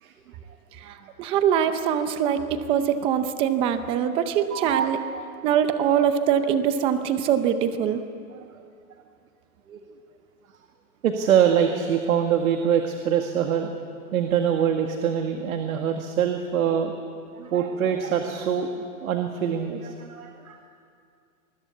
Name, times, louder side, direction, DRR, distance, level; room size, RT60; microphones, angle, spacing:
voice 1, 1.2-5.0 5.4-8.0, right 9 dB, 15° right, 10 dB, 0.6 m, -23 dB
voice 2, 4.2-4.9 5.1-5.3 8.3-8.5 9.7-9.8 11.0-13.7 14.1-16.9 17.3-20.6, right 8 dB, 70° right, 4 dB, 2.0 m, -24 dB
26.5 x 20.5 x 8.4 m, 2.4 s
hypercardioid pair, 160°, 44 cm